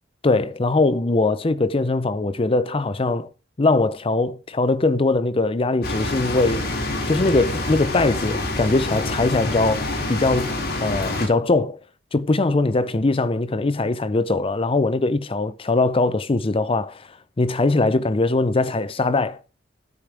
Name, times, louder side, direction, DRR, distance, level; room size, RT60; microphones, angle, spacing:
voice 1, 0.2-3.3 3.6-6.7 7.1-11.8 12.1-19.4, left 2 dB, 30° left, 0.5 m, -21 dB
sound 1, 5.8-11.3, left 2 dB, 55° left, 3.0 m, -27 dB
12.5 x 5.0 x 6.0 m
head